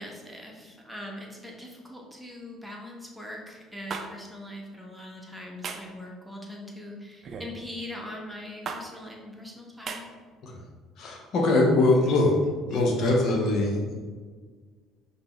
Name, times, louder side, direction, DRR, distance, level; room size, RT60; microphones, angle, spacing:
voice 1, 0.0-10.1, left 1 dB, 5° right, -1 dB, 0.9 m, -41 dB
sound 1, 3.9-4.1 5.6-5.9 7.2-7.5 8.7-8.8 9.9-10.0, right 5 dB, 50° right, 0.4 m, -34 dB
voice 2, 11.0-12.4 12.7-13.9, left 2 dB, 60° left, 0 dB, 0.6 m, -22 dB
5.3 x 2.0 x 3.0 m, 1.5 s
hypercardioid pair, 60°, 0 cm